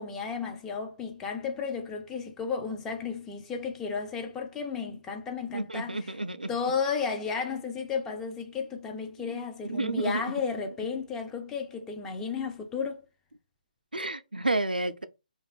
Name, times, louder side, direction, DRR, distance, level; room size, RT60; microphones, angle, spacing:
voice 1, 0.0-6.1 6.5-13.1, left 5 dB, 10° left, 0.3 m, -33 dB
voice 2, 5.5-6.5 9.2-9.4 9.7-10.2 13.9-15.0, right 2 dB, 80° right, 0.3 m, -30 dB
2.5 x 2.3 x 3.3 m
figure-of-eight pair, 140°, 5 cm